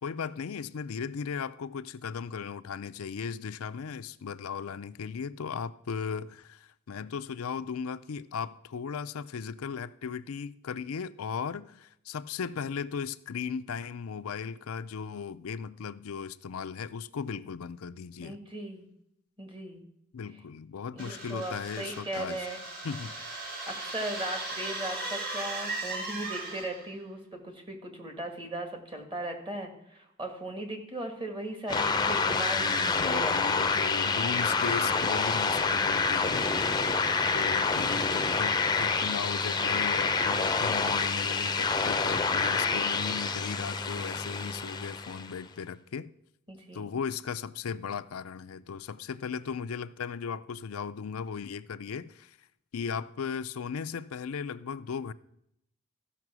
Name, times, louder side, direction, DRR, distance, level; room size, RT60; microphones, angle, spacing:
voice 1, 0.0-18.4 20.1-22.4 22.8-23.2 32.3-36.5 37.3-46.1 46.7-52.4 52.7-55.1, left 6 dB, 90° left, 0.5 m, -37 dB
voice 2, 18.2-18.9 19.4-19.8 20.9-22.6 23.7-33.8 36.5-36.9 46.5-46.9, right 1 dB, 25° right, 1.9 m, -38 dB
sound 1, 21.0-26.9, right 2 dB, 45° right, 3.5 m, -37 dB
sound 2, 31.7-45.4, left 4 dB, 20° left, 0.6 m, -27 dB
14.5 x 5.8 x 6.0 m
head